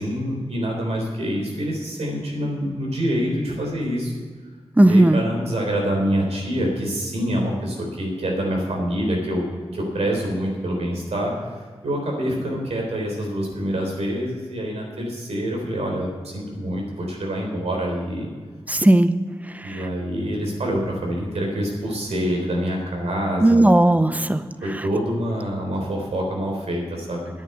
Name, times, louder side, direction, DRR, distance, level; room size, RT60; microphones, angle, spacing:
voice 1, 0.0-4.2 4.8-9.5 9.7-11.5 11.8-18.3 19.6-23.8 24.6-27.3, equal, 90° right, -1 dB, 3.7 m, -26 dB
voice 2, 4.8-5.2 18.7-19.1 19.5-19.8 23.4-24.4, right 1 dB, 15° right, 11 dB, 0.7 m, -16 dB
10.0 x 8.8 x 7.9 m, 1.5 s
wide cardioid pair, 70°, 11 cm